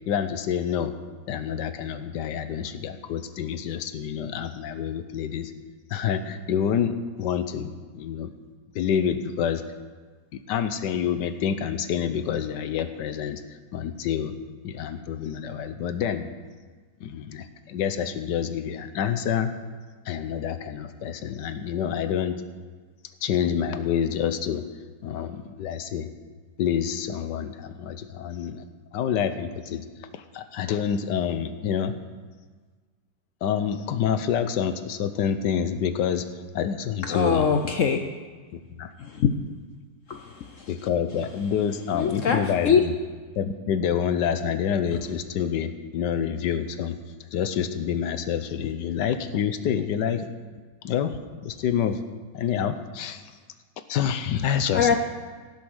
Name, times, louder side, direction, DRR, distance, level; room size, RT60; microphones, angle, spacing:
voice 1, 0.1-0.9 1.3-5.5 5.9-8.3 8.7-9.6 10.3-13.4 13.7-14.3 14.6-16.3 17.0-19.5 20.1-22.4 23.2-24.6 25.0-26.1 26.6-28.6 28.9-29.8 30.1-31.9 33.4-36.3 36.5-37.5 38.5-38.9 40.7-42.9 43.4-47.0 47.3-50.3 50.8-52.0 52.3-53.2 53.9-55.0, left 8 dB, 80° left, 10 dB, 1.4 m, -27 dB
voice 2, 37.1-38.0 39.0-39.3 40.1-40.2 40.6-40.7 41.9-42.4 42.6-42.8 54.7-55.0, left 6 dB, 60° left, 5 dB, 0.8 m, -22 dB
16.5 x 7.2 x 6.3 m, 1.4 s
omnidirectional pair, 1.9 m